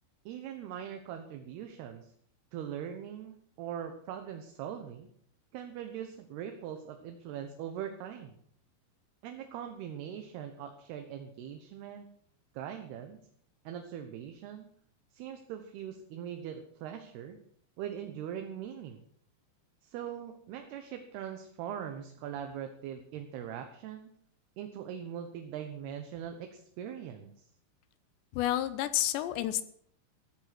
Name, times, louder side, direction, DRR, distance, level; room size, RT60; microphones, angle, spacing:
voice 1, 0.3-2.1 2.5-5.1 5.5-8.4 9.2-12.1 12.5-13.2 13.6-14.7 15.1-17.4 17.8-19.0 19.8-24.1 24.6-27.5, right 9 dB, 70° right, 6 dB, 2.9 m, -41 dB
voice 2, 28.3-29.6, left 13 dB, 80° left, 13 dB, 2.8 m, -30 dB
14.5 x 14.0 x 6.0 m, 0.64 s
omnidirectional pair, 5.4 m